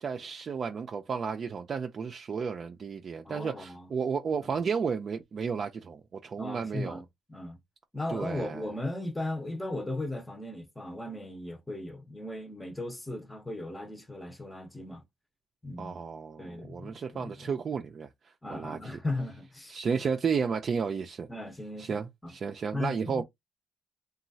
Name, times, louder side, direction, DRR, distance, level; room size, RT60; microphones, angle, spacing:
voice 1, 0.0-7.0 8.1-8.6 15.8-18.1 18.5-18.8 19.7-21.3 21.8-23.2, right 6 dB, 50° right, 0.4 m, -32 dB
voice 2, 3.2-3.9 4.4-4.6 6.4-7.0 7.3-7.6 7.9-15.0 15.6-16.0 16.4-17.5 18.4-19.7 21.3-22.3 22.7-23.2, left 2 dB, 10° left, 0.7 m, -37 dB
2.9 x 2.3 x 2.6 m
cardioid pair, 90°, 0 cm